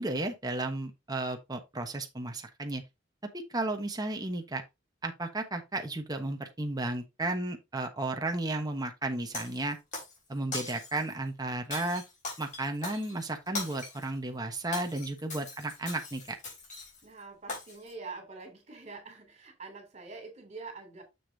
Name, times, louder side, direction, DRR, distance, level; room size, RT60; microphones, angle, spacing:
voice 1, 0.0-2.8 3.3-4.6 5.0-9.8 10.3-12.0 12.4-16.4, right 2 dB, 20° right, 1.1 m, -33 dB
Shatter, 9.3-10.2 10.5-11.1 11.7-14.1 14.5-17.0 17.5-17.9, left 3 dB, 40° left, 4.0 m, -40 dB
voice 2, 17.0-21.0, right 4 dB, 35° right, 3.2 m, -45 dB
7.2 x 6.8 x 2.8 m
head